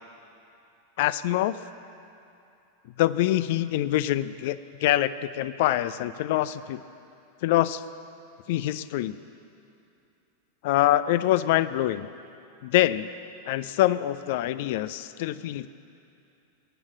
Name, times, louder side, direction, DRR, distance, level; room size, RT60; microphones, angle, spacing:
voice 1, 1.0-1.6 3.0-6.8 7.4-7.8 8.5-9.2 10.6-12.1 12.6-13.1 13.5-15.7, left 14 dB, 50° left, 14 dB, 0.5 m, -25 dB
20.5 x 8.9 x 7.4 m, 2.8 s
figure-of-eight pair, 90°, 0 cm